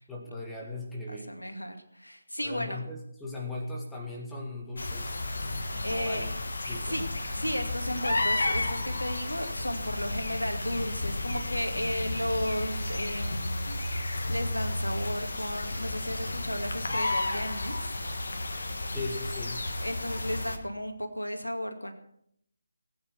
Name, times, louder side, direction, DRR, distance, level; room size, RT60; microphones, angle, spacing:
voice 1, 0.1-1.3 2.4-5.2 5.9-6.3 6.7-7.0 18.9-19.7, left 2 dB, 5° left, -3 dB, 2.1 m, -38 dB
voice 2, 1.1-2.8 5.8-6.3 6.8-7.1 7.3-17.9 19.8-21.9, equal, 85° left, 6 dB, 2.4 m, -34 dB
sound 1, 4.8-20.6, left 2 dB, 60° left, 1.9 m, -32 dB
19.5 x 9.0 x 6.1 m, 0.72 s
figure-of-eight pair, 150°, 0 cm